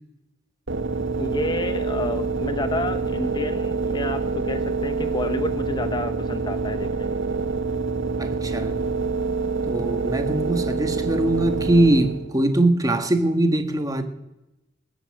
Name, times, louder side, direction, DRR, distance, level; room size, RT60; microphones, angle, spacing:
sound 1, 0.7-12.4, right 4 dB, 75° right, 1.1 m, -26 dB
voice 1, 1.2-7.1, left 2 dB, 25° left, 0.7 m, -30 dB
voice 2, 8.2-8.8 9.7-14.0, right 1 dB, 20° right, 1.8 m, -22 dB
21.0 x 7.2 x 8.8 m
head